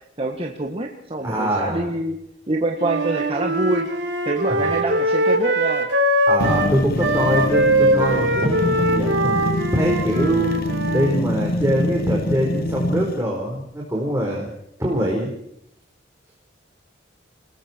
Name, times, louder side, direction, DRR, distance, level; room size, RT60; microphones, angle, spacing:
voice 1, 0.0-2.2 2.5-3.9 4.3-5.9, right 2 dB, 30° right, 1 dB, 1.9 m, -25 dB
voice 2, 1.2-1.9 4.5-4.7 6.3-9.4 9.7-14.5 14.8-15.3, equal, 15° right, -3 dB, 4.9 m, -23 dB
Wind instrument woodwind instrument, 2.8-11.1, right 1 dB, 65° right, 3.8 m, -21 dB
sound 1, 6.4-13.2, left 1 dB, 50° left, 1.2 m, -25 dB
29.5 x 20.5 x 4.7 m, 0.74 s
head